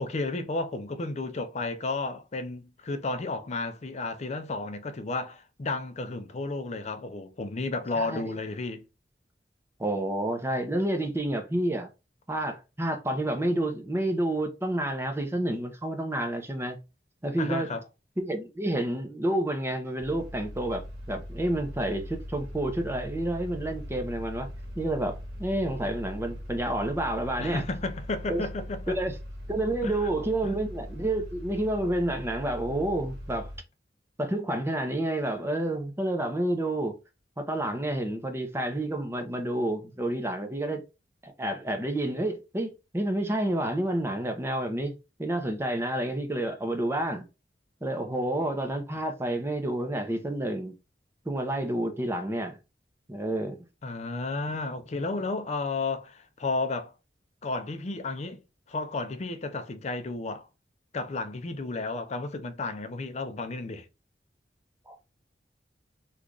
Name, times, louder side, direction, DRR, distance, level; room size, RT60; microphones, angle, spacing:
voice 1, 0.0-8.8 17.4-17.8 27.4-29.0 29.8-30.1 30.4-30.5 53.8-56.9 57.4-58.4 58.7-60.5 60.9-63.9, left 3 dB, 40° left, 0.5 m, -32 dB
voice 2, 9.8-11.9 12.3-16.8 17.2-17.8 18.2-24.5 24.8-27.6 28.3-28.4 28.9-29.1 29.5-33.5 34.2-36.9 37.4-40.8 41.2-44.9 45.2-47.2 47.8-50.7 51.3-52.6 53.1-53.6 64.9-65.0, right 1 dB, 15° right, 0.6 m, -29 dB
sound 1, 20.0-33.6, equal, 70° right, 1.2 m, -40 dB
3.2 x 2.4 x 3.7 m
head